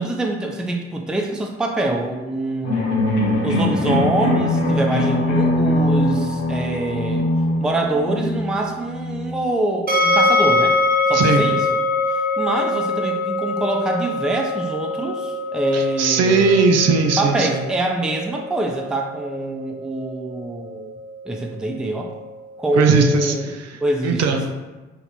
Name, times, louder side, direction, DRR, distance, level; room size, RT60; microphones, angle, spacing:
voice 1, 0.0-2.9 3.4-7.3 7.6-10.8 11.1-11.6 12.4-16.6 17.2-20.9 21.3-22.1 22.6-23.5 23.8-24.2, right 1 dB, ahead, 2 dB, 0.5 m, -24 dB
sound 1, 2.6-9.4, left 1 dB, 90° left, 0.7 m, -21 dB
sound 2, 9.9-22.9, left 2 dB, 25° right, 1.0 m, -24 dB
voice 2, 11.1-11.5 15.7-17.6 22.7-24.5, right 4 dB, 50° right, 4 dB, 0.6 m, -19 dB
5.8 x 2.6 x 2.8 m, 1.2 s
figure-of-eight pair, 45°, 34 cm